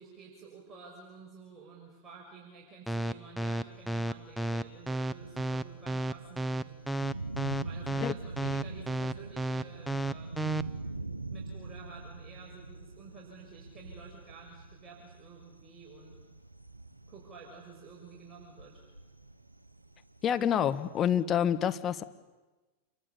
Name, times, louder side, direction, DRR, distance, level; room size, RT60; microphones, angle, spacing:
voice 1, 0.0-6.7 7.6-10.6 11.3-16.2 17.1-18.8, right 4 dB, 20° right, -2 dB, 6.1 m, -51 dB
sound 1, 2.9-10.6, right 1 dB, ahead, 0.9 m, -32 dB
Thunder, 3.7-21.2, right 3 dB, 90° right, 0.9 m, -44 dB
voice 2, 20.2-22.0, left 9 dB, 30° left, 9 dB, 1.5 m, -27 dB
28.0 x 23.0 x 8.6 m, 1.2 s
figure-of-eight pair, 90°, 0 cm